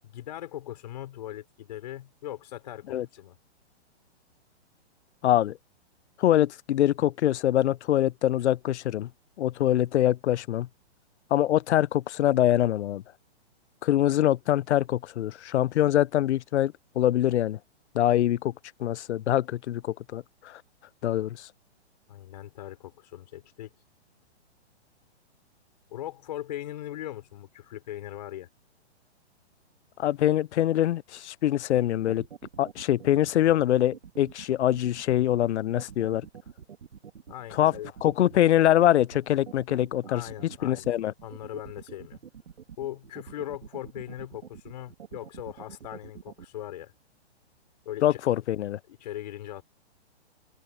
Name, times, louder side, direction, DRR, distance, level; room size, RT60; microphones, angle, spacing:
voice 1, 0.0-3.4 22.1-23.7 25.9-28.5 37.3-37.9 40.1-40.9 41.2-42.2 42.8-46.9 47.9-48.2 48.9-49.6, left 13 dB, 40° left, 5.4 m, -39 dB
voice 2, 5.2-5.6 6.2-9.1 9.4-10.7 11.3-13.0 13.8-17.6 17.9-18.5 18.8-20.6 21.0-21.5 30.0-32.2 32.6-36.3 37.5-37.7 38.0-41.1 48.0-48.8, left 12 dB, 80° left, 0.5 m, -24 dB
sound 1, 31.7-46.5, right 8 dB, 90° right, 2.7 m, -46 dB
open air
hypercardioid pair, 175°, 34 cm